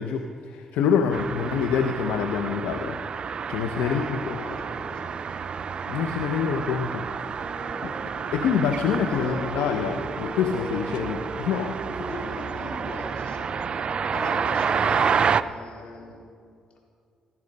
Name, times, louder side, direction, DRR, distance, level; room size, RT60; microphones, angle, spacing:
voice 1, 0.0-3.0 3.5-4.4 5.9-7.0 7.8-12.1, left 7 dB, 85° left, 5 dB, 0.9 m, -26 dB
sound 1, 1.1-15.4, right 6 dB, 50° right, 0.5 m, -29 dB
voice 2, 3.6-6.1 7.8-8.1 9.1-9.5 12.1-13.8 14.1-16.2, left 2 dB, 60° left, 0 dB, 4.1 m, -41 dB
Wind instrument woodwind instrument, 7.3-15.0, right 1 dB, ahead, 2.9 m, -41 dB
18.5 x 14.5 x 5.4 m, 2.4 s
supercardioid pair, 60°, 2 cm